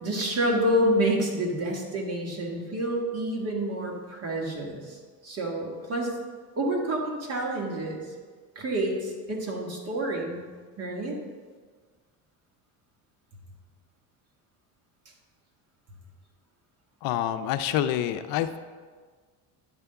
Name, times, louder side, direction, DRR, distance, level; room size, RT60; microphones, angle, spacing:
voice 1, 0.0-6.2 6.6-8.0 8.6-10.4 10.8-11.2, right 1 dB, 40° right, -1 dB, 1.8 m, -28 dB
voice 2, 17.0-18.6, left 11 dB, 70° left, 10 dB, 0.6 m, -27 dB
9.5 x 3.4 x 6.8 m, 1.5 s
cardioid pair, 115°, 37 cm